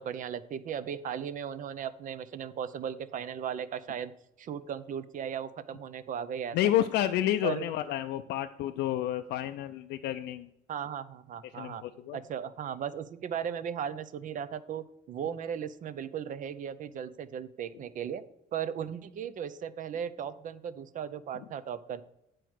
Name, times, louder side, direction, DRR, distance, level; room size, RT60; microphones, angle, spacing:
voice 1, 0.0-4.1 4.4-6.6 7.4-7.7 10.7-11.8 12.1-18.2 18.5-22.0, right 8 dB, 50° right, 13 dB, 0.6 m, -36 dB
voice 2, 6.5-10.5 11.5-12.2, left 12 dB, 80° left, 8 dB, 0.5 m, -30 dB
9.0 x 4.6 x 6.3 m, 0.82 s
cardioid pair, 110°, 17 cm